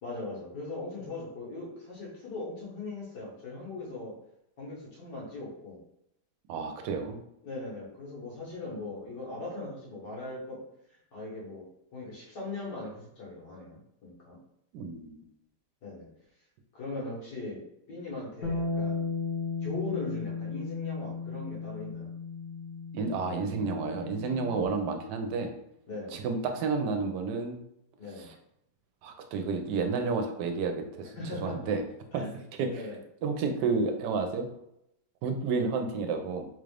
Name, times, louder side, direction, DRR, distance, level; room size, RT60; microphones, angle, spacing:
voice 1, 0.0-4.2 4.6-5.8 7.4-10.6 10.9-11.7 11.9-14.4 15.8-16.1 16.7-17.6 17.9-19.1 19.6-22.1 25.9-26.2 28.0-28.3 31.0-31.6 32.1-32.4 32.6-33.0, left 2 dB, 85° left, -5 dB, 2.0 m, -39 dB
voice 2, 6.5-7.2 14.7-15.2 22.9-25.5 26.1-27.6 28.2-28.3 29.0-31.1 31.4-31.8 32.1-32.2 32.6-32.7 33.2-34.5 35.2-36.5, right 4 dB, 85° right, 6 dB, 1.2 m, -30 dB
Bass guitar, 18.4-24.7, left 4 dB, 70° left, 1.4 m, -35 dB
3.9 x 2.4 x 3.3 m, 0.80 s
omnidirectional pair, 1.8 m